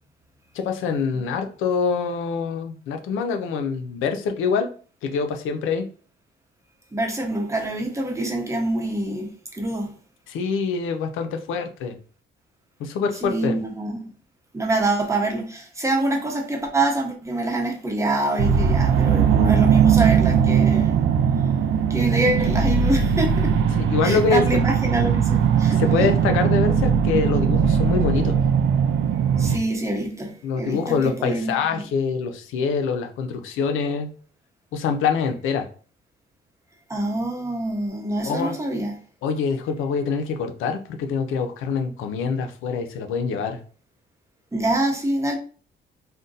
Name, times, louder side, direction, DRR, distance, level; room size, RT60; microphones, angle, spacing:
voice 1, 0.5-4.7 5.0-5.9 10.3-12.0 12.8-13.6 23.7-24.4 25.7-28.4 30.4-34.1 34.7-35.7 38.2-38.6 39.2-43.6, left 5 dB, 90° left, 0.5 m, -25 dB
voice 2, 6.9-9.9 13.2-14.0 14.5-21.0 21.9-23.6 24.0-26.1 29.4-31.8 36.9-39.0 44.5-45.4, right 2 dB, 15° right, 0.8 m, -25 dB
sound 1, 18.4-29.6, right 7 dB, 75° right, 0.4 m, -19 dB
2.5 x 2.1 x 3.9 m
cardioid pair, 90°, 20 cm